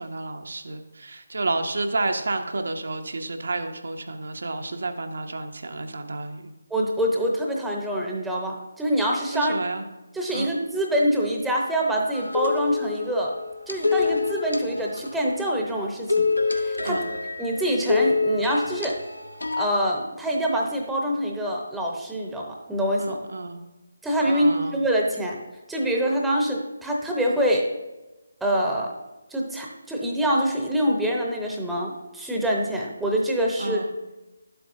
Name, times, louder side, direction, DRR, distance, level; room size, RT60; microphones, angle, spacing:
voice 1, 0.0-6.5 9.3-9.8 10.3-10.5 16.8-17.1 23.0-23.6 24.3-24.8 33.6-33.9, right 2 dB, 60° right, 5 dB, 0.8 m, -30 dB
voice 2, 6.7-9.5 10.1-13.3 13.7-17.0 17.4-19.0 19.6-23.2 24.0-25.4 25.7-27.7 28.4-28.9 29.3-33.8, equal, 5° right, -1 dB, 0.8 m, -25 dB
sound 1, 12.1-15.4 16.1-19.7, left 4 dB, 70° left, 0.7 m, -26 dB
11.5 x 7.8 x 2.6 m, 1.0 s
figure-of-eight pair, 150°, 0 cm